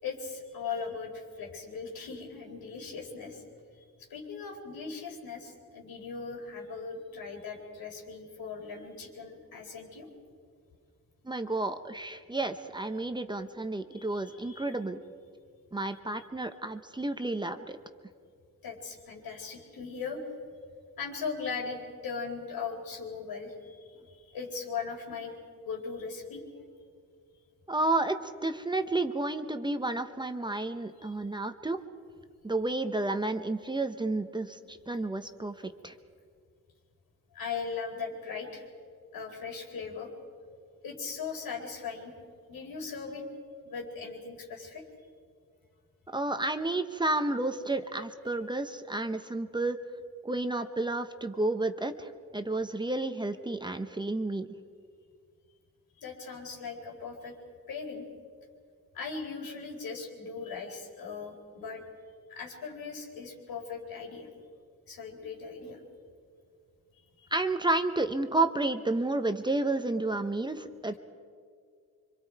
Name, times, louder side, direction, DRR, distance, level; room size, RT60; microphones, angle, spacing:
voice 1, 0.0-3.4 4.1-10.1 13.9-14.7 18.6-20.2 21.0-23.8 24.1-25.4 25.6-26.4 31.0-31.1 37.3-38.6 39.1-40.1 40.8-42.1 42.5-43.2 43.6-44.8 56.0-57.3 57.7-58.0 58.9-61.8 62.3-64.3 64.9-65.8 67.2-67.3, left 5 dB, 85° left, 1 dB, 4.3 m, -39 dB
voice 2, 11.2-15.0 15.7-17.8 27.7-31.8 32.4-35.9 46.1-49.8 50.2-54.5 67.3-70.9, right 2 dB, 15° right, 8 dB, 0.7 m, -31 dB
26.5 x 25.0 x 4.6 m, 2.2 s
wide cardioid pair, 160°, 35 cm